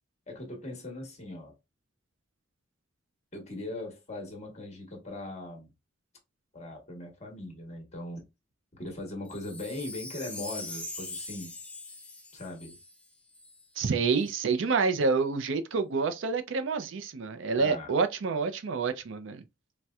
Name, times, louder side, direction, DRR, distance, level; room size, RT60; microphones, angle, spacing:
voice 1, 0.3-1.5 3.3-5.7 6.5-8.2 8.7-11.5 12.3-12.8 17.6-17.9, left 2 dB, 35° left, 1.1 m, -40 dB
Wind chime, 9.3-13.6 14.2-14.3, left 2 dB, 5° left, 0.5 m, -42 dB
voice 2, 13.8-19.4, right 4 dB, 65° right, 0.4 m, -28 dB
4.2 x 2.1 x 2.3 m
head